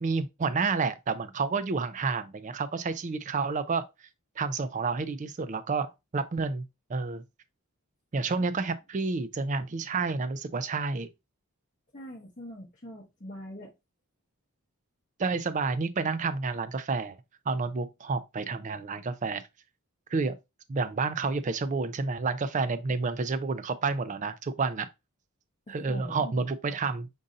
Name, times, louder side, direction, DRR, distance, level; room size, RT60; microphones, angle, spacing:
voice 1, 0.0-3.8 4.4-7.2 8.1-11.1 15.2-17.2 17.5-19.4 20.1-20.3 20.7-24.9 25.7-27.1, right 4 dB, 35° right, 0.4 m, -30 dB
voice 2, 11.9-13.7 25.8-26.3, equal, 35° left, 0.9 m, -43 dB
5.3 x 2.6 x 3.7 m
head